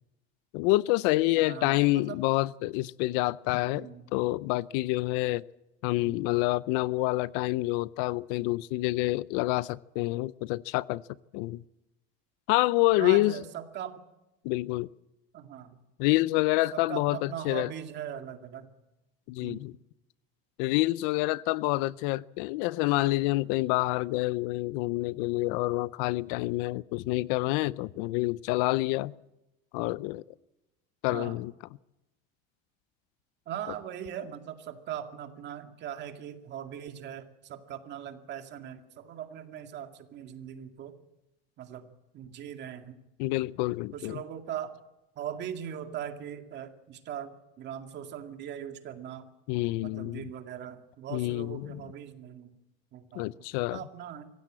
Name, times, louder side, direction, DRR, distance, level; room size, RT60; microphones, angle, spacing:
voice 1, 0.5-5.4 5.8-11.0 11.3-11.6 12.5-13.4 14.4-14.9 16.0-17.7 19.3-19.7 20.6-29.1 29.7-30.2 31.0-31.5 43.2-44.2 49.5-50.3 51.1-51.8 53.1-53.8, left 19 dB, 65° left, 19 dB, 0.6 m, -27 dB
voice 2, 1.4-2.2 3.7-4.1 6.0-6.2 13.0-14.0 15.3-15.8 16.7-18.7 19.4-19.7 31.1-31.4 33.5-41.0 41.6-43.0 43.9-44.8 45.2-49.3 49.8-52.5 52.9-53.4 53.7-54.3, right 9 dB, 35° right, 6 dB, 2.2 m, -40 dB
25.0 x 16.0 x 7.6 m, 0.95 s
cardioid pair, 155°, 29 cm